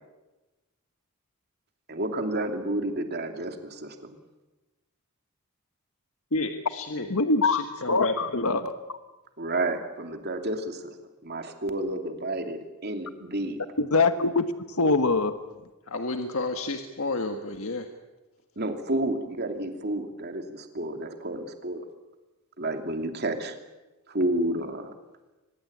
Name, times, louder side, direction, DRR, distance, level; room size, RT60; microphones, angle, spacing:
voice 1, 1.9-4.2 9.4-10.9 11.2-13.6 18.6-21.8 22.6-23.6 24.1-24.9, right 1 dB, 45° right, 5 dB, 2.8 m, -30 dB
voice 2, 6.3-7.1 7.4-8.6 15.9-17.9, left 2 dB, 65° left, 5 dB, 1.6 m, -31 dB
voice 3, 7.1-8.7 13.8-14.5 14.8-15.4, left 3 dB, 80° left, 10 dB, 1.2 m, -23 dB
24.5 x 20.5 x 8.7 m, 1.1 s
head